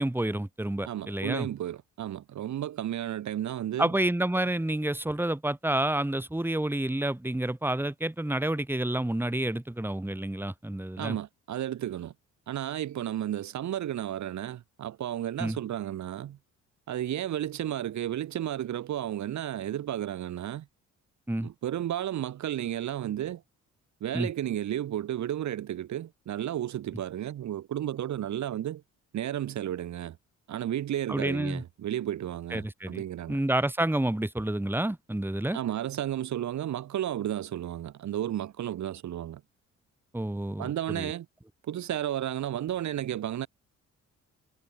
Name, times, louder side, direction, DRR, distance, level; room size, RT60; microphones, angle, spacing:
voice 1, 0.0-1.5 3.8-11.2 15.4-15.6 21.3-21.5 24.1-24.3 31.1-31.6 32.5-33.0 33.3-35.6 40.1-41.1, right 1 dB, 5° right, 3.7 m, -29 dB
voice 2, 0.8-3.9 11.0-12.1 12.5-16.4 16.9-20.7 21.4-23.4 24.0-28.8 29.1-30.2 30.5-33.4 35.5-39.4 40.6-41.3 41.6-43.5, right 11 dB, 70° right, 3.1 m, -33 dB
cardioid pair, 90°, 30 cm